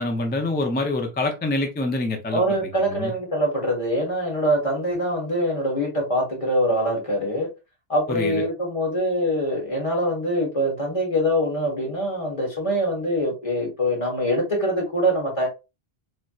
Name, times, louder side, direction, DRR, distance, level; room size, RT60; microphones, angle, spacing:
voice 1, 0.0-2.4 2.8-3.1 8.1-8.4, left 2 dB, 15° left, 0.3 m, -26 dB
voice 2, 2.3-7.5 7.9-15.5, equal, 30° left, 1.3 m, -24 dB
3.2 x 2.7 x 2.3 m
omnidirectional pair, 1.1 m